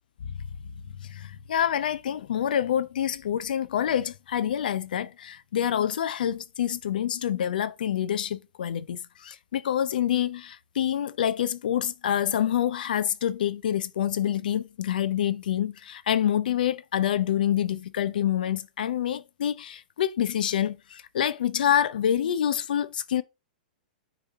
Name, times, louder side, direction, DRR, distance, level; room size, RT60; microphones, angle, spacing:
voice 1, 1.0-23.2, left 10 dB, 75° left, 0.6 m, -27 dB
6.3 x 3.2 x 5.4 m
hypercardioid pair, 120°, 5 cm